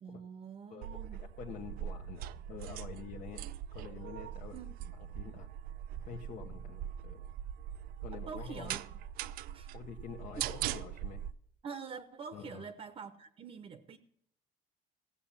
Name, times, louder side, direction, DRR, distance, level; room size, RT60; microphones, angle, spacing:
voice 1, 0.0-1.2 4.5-4.9 8.1-8.9 9.5-9.7 11.6-14.0, right 6 dB, 40° right, 0.8 m, -46 dB
voice 2, 0.7-3.5 3.7-4.6 5.0-5.5 6.1-7.2 8.0-8.8 9.7-11.3 12.3-12.6, left 7 dB, 55° left, 0.9 m, -47 dB
sound 1, 0.8-11.3, right 11 dB, 80° right, 0.5 m, -41 dB
16.0 x 7.2 x 7.2 m
cardioid pair, 170°, 15 cm